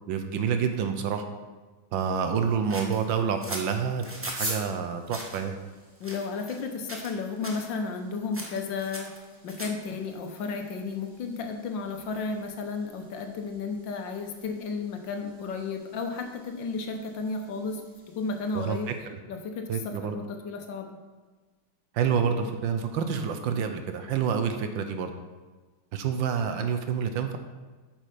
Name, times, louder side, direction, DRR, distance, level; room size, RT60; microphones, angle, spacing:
voice 1, 0.1-1.2 1.9-5.6 18.5-18.8 19.7-20.2 21.9-25.1 25.9-27.4, right 7 dB, 70° right, 7 dB, 1.4 m, -28 dB
sound 1, 2.7-4.6 5.1-5.4 6.0-6.6 6.9-7.2 7.4-7.7 8.3-9.9, right 1 dB, 10° right, 0.7 m, -39 dB
sound 2, 4.2-19.0, right 1 dB, 55° right, 3.5 m, -46 dB
voice 2, 6.0-9.1 9.4-17.8 18.2-18.9 19.3-20.9, left 4 dB, 70° left, 5 dB, 1.5 m, -33 dB
8.5 x 6.4 x 5.0 m, 1.3 s
omnidirectional pair, 2.3 m